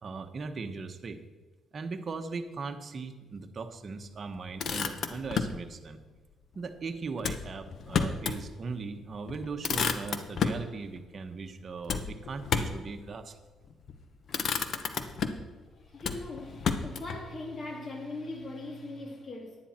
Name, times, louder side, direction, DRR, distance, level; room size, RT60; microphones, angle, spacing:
voice 1, 0.0-1.2 1.7-6.0 6.5-13.4 15.4-15.5, right 4 dB, 45° right, 1.0 m, -39 dB
Motor vehicle (road), 4.3-5.6 7.2-8.4 8.8-8.9 9.3-10.7 11.9-12.9 13.7-14.0 14.3-15.5 16.0-17.2, left 6 dB, 60° left, 0.9 m, -31 dB
voice 2, 15.7-19.6, left 2 dB, 40° left, 2.1 m, -40 dB
10.5 x 10.0 x 4.3 m
cardioid pair, 90°, 0 cm